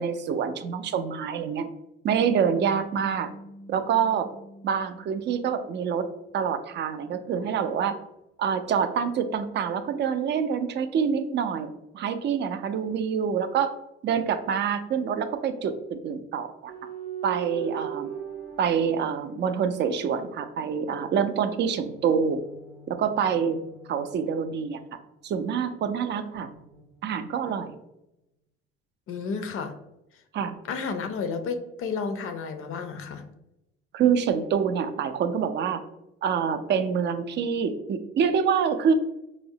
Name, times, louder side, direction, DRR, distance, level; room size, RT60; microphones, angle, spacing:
voice 1, 0.0-1.7 2.0-3.3 3.7-4.3 4.6-6.1 6.3-8.0 8.4-13.7 14.0-15.7 16.0-16.7 17.2-18.1 18.6-22.4 22.9-23.6 23.9-24.8 25.2-26.5 27.0-27.7 30.3-30.6 33.9-35.8 36.2-38.9, right 7 dB, 40° right, 9 dB, 0.4 m, -26 dB
sound 1, 2.1-6.7, equal, 80° left, 0.7 m, -46 dB
sound 2, 16.7-20.4 21.8-25.5 26.3-27.6, right 9 dB, 85° right, 0.7 m, -41 dB
voice 2, 29.1-29.7 30.7-33.3, left 5 dB, 50° left, 7 dB, 0.5 m, -31 dB
4.7 x 2.0 x 2.7 m, 0.88 s
supercardioid pair, 75°, 29 cm